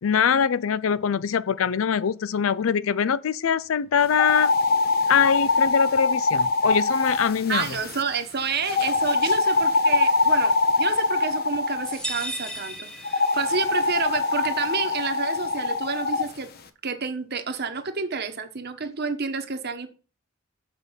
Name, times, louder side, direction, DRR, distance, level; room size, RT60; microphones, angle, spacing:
voice 1, 0.0-4.5 5.1-7.7, left 7 dB, 75° left, 0.4 m, -23 dB
sound 1, 4.1-8.0 8.7-12.0 13.0-16.3, left 3 dB, 50° left, 0.9 m, -23 dB
voice 2, 7.5-16.5 16.8-19.9, right 5 dB, 50° right, 1.2 m, -29 dB
sound 2, 11.8-13.8, right 1 dB, 5° left, 1.2 m, -35 dB
6.9 x 6.0 x 5.4 m
head